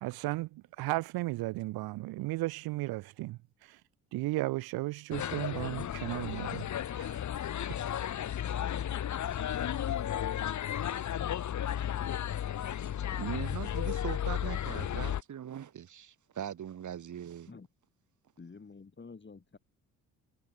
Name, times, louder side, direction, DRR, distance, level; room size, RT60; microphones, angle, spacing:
voice 1, 0.0-3.8 4.1-6.7 7.0-7.2 7.7-7.8, right 19 dB, 80° right, 2.1 m, -35 dB
sound 1, 5.1-15.2, left 10 dB, 50° left, 1.4 m, -34 dB
voice 2, 13.2-17.5, right 9 dB, 55° right, 2.3 m, -40 dB
voice 3, 18.4-19.6, left 4 dB, 30° left, 5.8 m, -49 dB
supercardioid pair, 60°, 36 cm